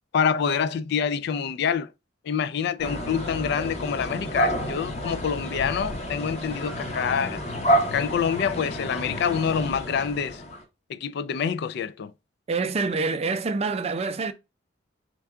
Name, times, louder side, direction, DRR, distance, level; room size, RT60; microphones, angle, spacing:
voice 1, 0.1-1.9 2.2-7.4 7.9-10.4 10.9-12.1, left 7 dB, 65° left, 0.3 m, -26 dB
sound 1, 2.8-10.6, equal, 35° left, 0.9 m, -29 dB
voice 2, 12.5-14.3, right 4 dB, 35° right, 0.4 m, -26 dB
4.5 x 2.2 x 3.6 m
head